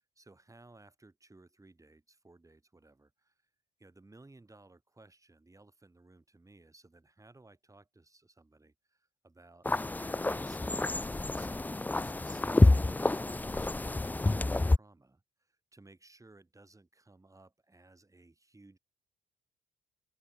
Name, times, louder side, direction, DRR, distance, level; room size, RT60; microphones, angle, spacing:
voice 1, 0.2-3.3 3.8-9.7 10.0-13.2 13.4-15.2 15.5-18.8, right 2 dB, 15° right, 4.3 m, -58 dB
sound 1, 9.7-14.8, left 2 dB, 10° left, 0.4 m, -28 dB
open air
cardioid pair, 90°, 20 cm